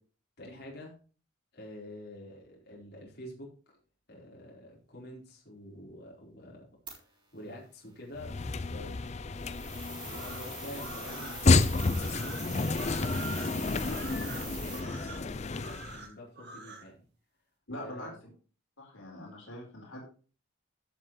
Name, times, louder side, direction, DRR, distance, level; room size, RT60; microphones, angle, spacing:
voice 1, 0.4-1.0 1.5-3.5 4.1-6.7 7.0-9.7 10.0-17.0 17.7-18.2, left 1 dB, 55° left, -3 dB, 4.5 m, -48 dB
sound 1, 6.9-7.0 9.4-14.8, right 4 dB, 25° right, 4.1 m, -44 dB
sound 2, 8.2-16.0, left 3 dB, 35° left, 0.5 m, -30 dB
sound 3, 10.0-16.9, right 3 dB, 55° right, 2.2 m, -46 dB
voice 2, 17.7-18.1 18.8-20.0, left 1 dB, 80° left, -1 dB, 4.4 m, -43 dB
15.0 x 6.7 x 3.3 m, 0.37 s
head